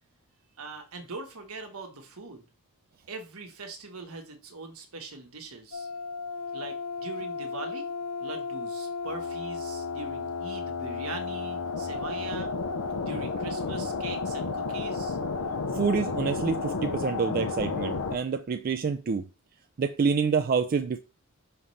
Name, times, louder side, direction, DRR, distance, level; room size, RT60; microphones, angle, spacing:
voice 1, 0.6-2.4 3.1-5.9 6.5-7.9 8.2-12.5 13.0-15.2, right 3 dB, 70° right, 1.4 m, -41 dB
sound 1, 5.7-18.2, left 4 dB, 70° left, 0.7 m, -32 dB
voice 2, 15.7-19.3 19.8-21.0, right 5 dB, 40° right, 0.4 m, -27 dB
5.7 x 3.2 x 5.5 m
head